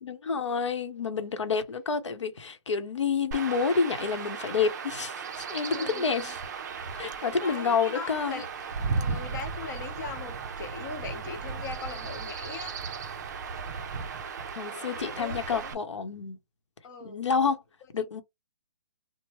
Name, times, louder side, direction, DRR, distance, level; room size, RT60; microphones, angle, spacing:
voice 1, 0.0-6.4 6.9-8.4 14.5-16.4 17.0-17.6 17.9-18.2, left 5 dB, 90° left, 0.8 m, -29 dB
Chirp tweet / Wind / Stream, 3.3-15.7, right 5 dB, 40° right, 0.4 m, -36 dB
voice 2, 5.7-6.3 7.2-13.1 14.6-15.7 16.8-17.2 18.0-18.1, left 5 dB, 40° left, 0.9 m, -41 dB
3.0 x 2.0 x 2.9 m
hypercardioid pair, 160°, 15 cm